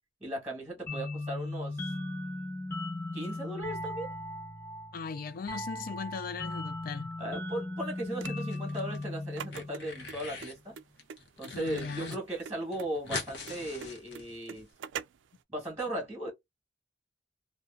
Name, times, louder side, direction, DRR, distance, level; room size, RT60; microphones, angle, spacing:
voice 1, 0.2-1.9 3.1-4.1 7.2-10.8 11.4-14.7 15.5-16.3, right 1 dB, 10° right, 1.2 m, -37 dB
sound 1, 0.9-10.2, left 2 dB, 15° left, 1.0 m, -38 dB
voice 2, 4.9-7.1 11.5-12.2, left 5 dB, 50° left, 0.3 m, -38 dB
sound 2, 8.2-15.4, right 7 dB, 80° right, 0.3 m, -44 dB
sound 3, 8.4-9.0 9.3-10.6 11.0-12.2 12.4-12.5 12.7-14.6, left 3 dB, 70° left, 0.7 m, -42 dB
2.5 x 2.2 x 2.3 m
head